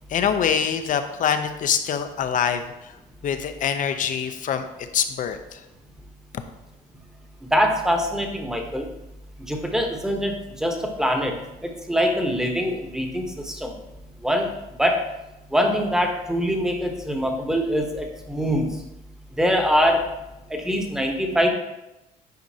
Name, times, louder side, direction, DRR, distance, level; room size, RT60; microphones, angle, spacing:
voice 1, 0.1-2.9 3.2-5.6 6.3-6.4, left 8 dB, 50° left, 8 dB, 0.6 m, -25 dB
voice 2, 7.5-8.9 9.5-11.4 11.9-13.7 14.2-14.5 14.8-15.1 15.5-18.7 19.4-20.1 20.5-21.5, equal, 5° right, 3 dB, 1.0 m, -23 dB
9.2 x 5.0 x 2.8 m, 0.94 s
cardioid pair, 110°, 17 cm